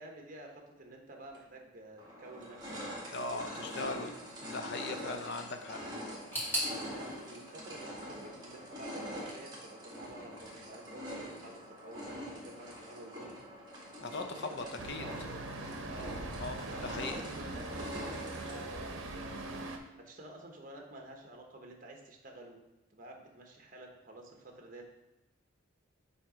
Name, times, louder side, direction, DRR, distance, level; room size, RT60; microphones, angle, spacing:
voice 1, 0.0-3.8 6.6-13.4 14.1-15.4 15.9-16.1 16.7-19.6 19.9-22.6 22.9-24.8, right 1 dB, 40° right, 2 dB, 1.0 m, -50 dB
sound 1, 1.3-1.4 2.0-18.8, equal, 20° right, 1.7 m, -44 dB
voice 2, 3.1-4.1 4.4-5.8 14.0-15.0 16.4-17.2 19.2-19.4, left 3 dB, 55° left, 6 dB, 0.6 m, -39 dB
sound 2, 6.3-9.2 9.4-10.3 10.5-10.6 11.5-11.6, equal, 10° left, 2.1 m, -40 dB
Traffic noise roadway noise, 14.8-19.8, right 2 dB, 75° right, 0.8 m, -41 dB
7.6 x 2.9 x 5.0 m, 0.99 s
head